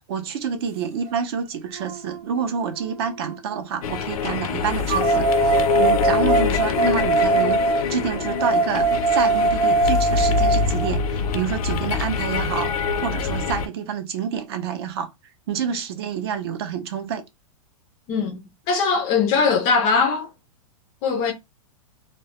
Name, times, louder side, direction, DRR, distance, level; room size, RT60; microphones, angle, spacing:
voice 1, 0.0-7.6 7.9-15.1 15.5-17.2, right 7 dB, 45° right, 0.5 m, -28 dB
sound 1, 1.1-1.2 1.7-3.6 4.9-10.9, right 3 dB, 75° right, 0.8 m, -22 dB
sound 2, 3.8-13.7, left 6 dB, 90° left, 0.4 m, -25 dB
voice 2, 18.1-18.4 18.7-20.3 21.0-21.3, left 5 dB, 25° left, 0.4 m, -20 dB
2.1 x 2.0 x 2.8 m
supercardioid pair, 165°, 18 cm